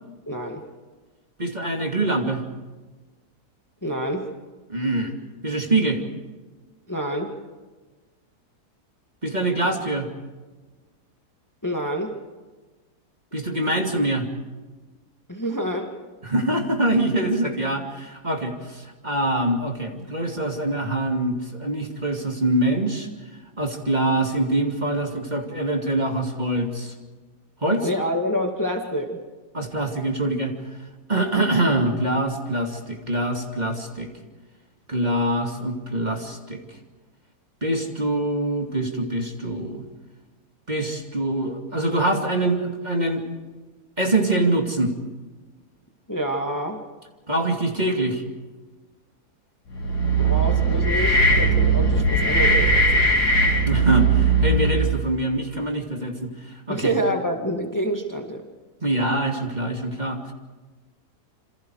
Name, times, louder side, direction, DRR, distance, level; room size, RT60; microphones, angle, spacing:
voice 1, 0.3-0.6 3.8-4.3 6.9-7.3 11.6-12.1 15.3-15.9 27.8-29.2 46.1-46.8 50.2-53.1 56.7-58.4, equal, 10° left, 3 dB, 2.1 m, -27 dB
voice 2, 1.4-2.4 4.7-5.1 5.4-6.0 9.2-10.1 13.3-14.3 16.2-23.1 23.6-26.9 27.6-27.9 29.5-30.6 31.1-34.1 34.9-36.6 37.6-39.8 40.7-43.2 44.0-44.9 47.3-48.2 53.7-56.9 58.8-60.3, right 1 dB, 25° right, 3 dB, 2.8 m, -24 dB
sound 1, 49.7-55.0, right 2 dB, 85° left, 3.1 m, -19 dB
28.0 x 27.0 x 4.9 m, 1.3 s
omnidirectional pair, 1.7 m